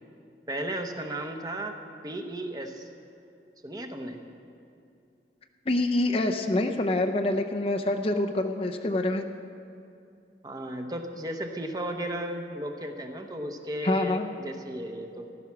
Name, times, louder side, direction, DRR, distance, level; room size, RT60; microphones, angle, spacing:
voice 1, 0.5-1.8 2.0-2.9 3.6-4.2 10.4-15.3, right 1 dB, 20° right, 4 dB, 0.9 m, -34 dB
voice 2, 5.7-9.2 13.8-14.3, left 2 dB, 35° left, 4 dB, 0.6 m, -26 dB
15.0 x 12.5 x 5.9 m, 2.6 s
head